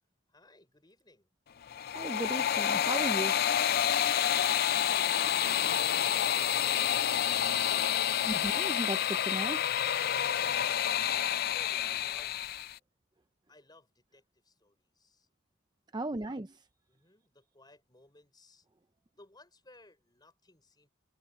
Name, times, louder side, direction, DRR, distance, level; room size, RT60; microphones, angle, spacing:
voice 1, 0.3-1.3 11.4-12.6 13.5-15.3 15.9-16.1 16.9-18.7 19.2-20.9, left 2 dB, 20° left, 4.8 m, -59 dB
sound 1, 1.6-12.8, left 10 dB, 45° left, 0.4 m, -29 dB
voice 2, 1.9-3.3 8.2-9.7 15.9-16.6, right 1 dB, 20° right, 0.5 m, -36 dB
head